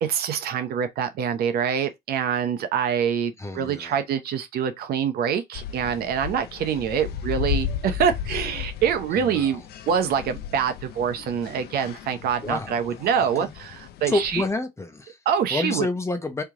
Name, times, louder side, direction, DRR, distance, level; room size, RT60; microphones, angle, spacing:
voice 1, 0.0-14.4 15.3-15.9, right 8 dB, 65° right, 0.8 m, -25 dB
voice 2, 3.4-3.9 9.2-9.6 12.4-12.9 13.4-13.5 14.1-15.2 15.5-16.4, left 2 dB, 15° left, 0.9 m, -28 dB
sound 1, 5.5-14.5, left 9 dB, 70° left, 0.6 m, -35 dB
3.3 x 2.9 x 3.7 m
cardioid pair, 110°, 17 cm